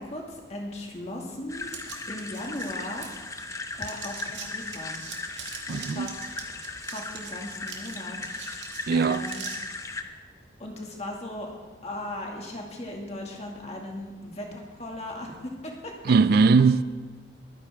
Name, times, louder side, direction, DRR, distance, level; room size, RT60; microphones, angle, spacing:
voice 1, 0.0-1.8 2.1-3.1 3.8-5.0 5.7-6.2 6.8-8.2 8.9-9.5 10.6-11.5 11.8-15.9, left 1 dB, 35° left, 2.0 m, -37 dB
sound 1, 1.5-10.0, left 3 dB, 15° left, 0.6 m, -37 dB
sound 2, 1.7-3.5 3.8-9.6, right 7 dB, 70° right, 2.1 m, -42 dB
voice 2, 5.7-6.1 8.9-9.2 16.0-16.8, right 4 dB, 50° right, 0.3 m, -20 dB
22.0 x 9.7 x 3.5 m
head